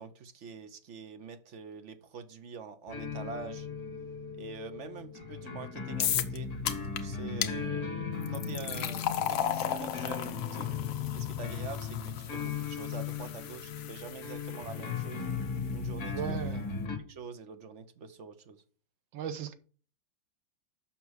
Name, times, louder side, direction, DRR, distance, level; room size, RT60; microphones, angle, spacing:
voice 1, 0.0-3.7 4.4-6.5 7.0-10.9 11.1-15.2 15.7-16.5 17.1-18.6, right 5 dB, 50° right, 0.9 m, -45 dB
sound 1, 2.9-17.0, left 6 dB, 50° left, 2.1 m, -37 dB
sound 2, 6.0-6.4 6.7-7.0 7.4-7.5 8.2-15.3, left 10 dB, 80° left, 1.6 m, -35 dB
voice 2, 16.1-16.7 19.1-19.5, right 9 dB, 80° right, 1.7 m, -36 dB
7.1 x 5.9 x 6.4 m
omnidirectional pair, 2.1 m